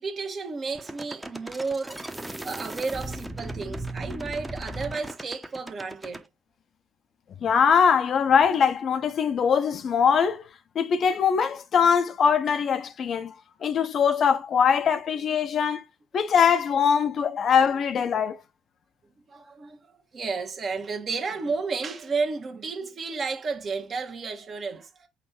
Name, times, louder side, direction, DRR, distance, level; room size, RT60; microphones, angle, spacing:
voice 1, 0.0-2.0 2.4-6.2 19.3-25.1, right 4 dB, 45° right, 1.2 m, -32 dB
sound 1, 0.7-6.2, right 1 dB, 10° right, 0.9 m, -37 dB
voice 2, 7.4-10.5 10.7-13.4 13.6-15.8 16.1-18.4, left 7 dB, 50° left, 0.6 m, -22 dB
4.2 x 2.6 x 4.5 m
hypercardioid pair, 55°, 0 cm